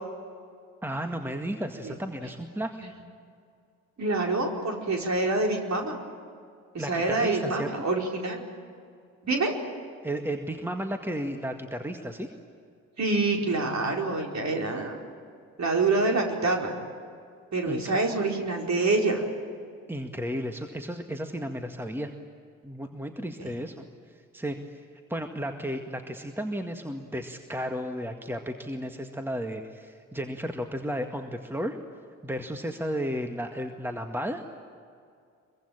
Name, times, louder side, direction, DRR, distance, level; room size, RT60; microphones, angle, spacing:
voice 1, 0.8-2.9 6.8-7.7 10.0-12.3 17.7-18.0 19.9-22.1 22.6-23.8 24.3-24.8 25.1-31.8 32.2-34.4, equal, 5° right, 5 dB, 1.9 m, -33 dB
voice 2, 4.0-6.0 6.7-8.4 9.2-9.5 13.0-15.0 15.6-16.7 17.5-19.2 23.4-23.5, right 3 dB, 40° right, 1 dB, 4.7 m, -26 dB
24.0 x 23.5 x 8.9 m, 2.3 s
figure-of-eight pair, 40°, 41 cm